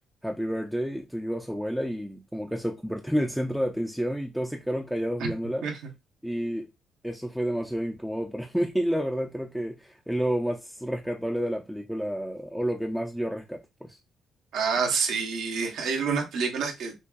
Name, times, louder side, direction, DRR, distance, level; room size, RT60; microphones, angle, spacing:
voice 1, 0.2-5.7 6.2-6.7 7.0-14.0, equal, ahead, 0.4 m, -30 dB
voice 2, 14.5-16.9, right 5 dB, 85° right, 0.9 m, -27 dB
5.3 x 2.3 x 2.4 m
cardioid pair, 90°, 0 cm